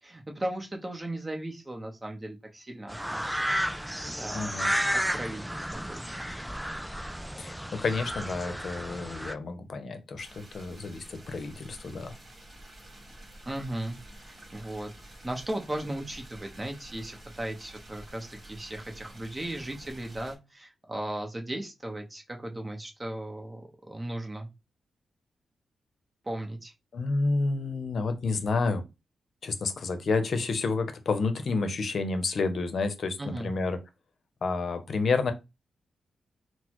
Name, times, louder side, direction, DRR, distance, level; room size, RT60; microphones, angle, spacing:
voice 1, 0.0-3.4 3.7-4.5 4.9-6.2 13.5-14.9 15.2-24.5 26.2-26.7 33.2-33.5, right 1 dB, 20° right, 0.9 m, -37 dB
sound 1, 2.9-9.3, equal, 5° right, 0.3 m, -32 dB
voice 2, 4.3-4.7 7.4-12.1 26.9-28.8 29.4-33.8 34.4-35.3, left 3 dB, 60° left, 0.7 m, -30 dB
sound 2, 10.2-20.4, right 1 dB, 35° right, 1.6 m, -49 dB
4.0 x 2.0 x 3.0 m
cardioid pair, 90°, 0 cm